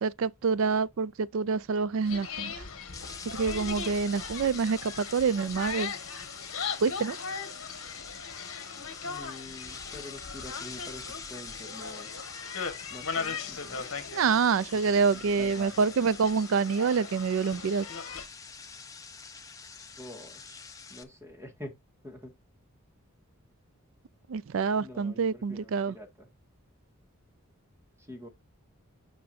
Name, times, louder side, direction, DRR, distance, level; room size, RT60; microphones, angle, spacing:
voice 1, 0.0-2.5 3.3-5.9 6.8-7.2 14.1-17.9 24.3-25.9, right 5 dB, 65° right, 0.4 m, -27 dB
sound 1, 2.0-18.3, left 5 dB, 65° left, 1.5 m, -39 dB
sound 2, 2.9-21.0, left 5 dB, 15° left, 0.7 m, -45 dB
voice 2, 9.0-12.3 12.9-13.9 14.7-14.8 15.1-15.9 20.0-20.6 20.9-21.8 22.0-22.3 24.8-26.3 28.0-28.3, left 1 dB, 10° right, 1.9 m, -46 dB
9.4 x 5.2 x 2.7 m
head